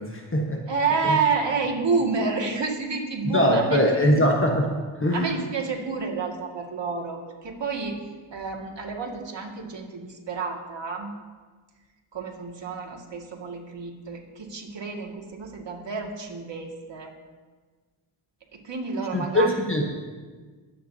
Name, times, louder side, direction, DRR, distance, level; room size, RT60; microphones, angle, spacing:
voice 1, 0.0-0.6 1.0-1.2 3.2-5.3 19.1-19.9, equal, 25° left, 1 dB, 1.3 m, -22 dB
voice 2, 0.7-3.8 5.1-8.0 8.3-11.1 12.1-17.1 18.5-19.5, right 4 dB, 60° right, 0 dB, 2.3 m, -29 dB
22.5 x 9.0 x 2.8 m, 1.4 s
cardioid pair, 75°, 50 cm